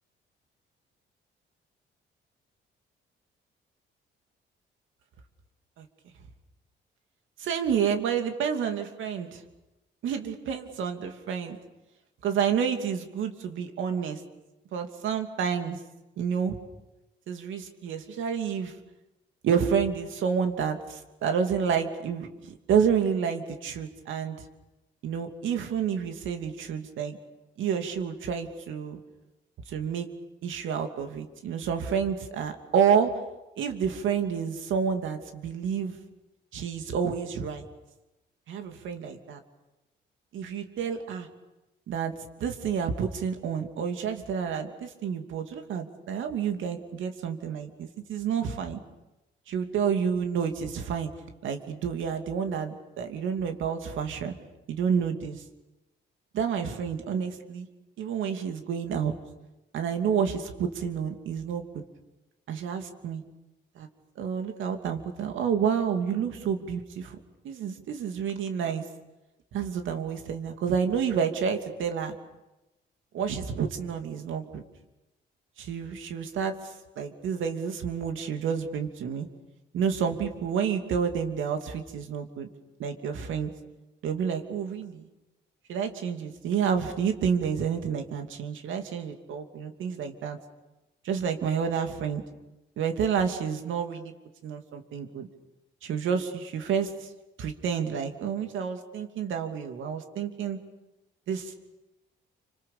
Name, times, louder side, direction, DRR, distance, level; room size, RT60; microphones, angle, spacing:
voice 1, 7.4-9.4 10.0-11.6 12.2-14.2 14.7-15.8 16.2-16.6 17.3-18.7 19.4-24.4 25.0-27.2 27.6-29.0 29.7-30.1 30.4-33.1 33.6-36.0 36.5-37.6 38.5-39.4 40.3-41.3 41.9-42.1 42.4-48.8 49.5-51.1 51.4-54.4 54.7-55.4 56.3-57.7 58.0-59.1 59.7-61.8 62.5-63.2 63.8-63.9 64.2-67.2 67.4-68.9 69.5-72.2 73.1-74.6 75.6-79.3 79.7-82.5 82.8-83.5 84.0-85.1 85.7-90.4 91.0-92.2 92.8-94.1 94.4-95.3 95.8-97.1 97.4-100.6 101.3-101.5, right 7 dB, 80° right, 6 dB, 2.8 m, -29 dB
29.0 x 26.0 x 6.9 m, 0.99 s
cardioid pair, 90°, 20 cm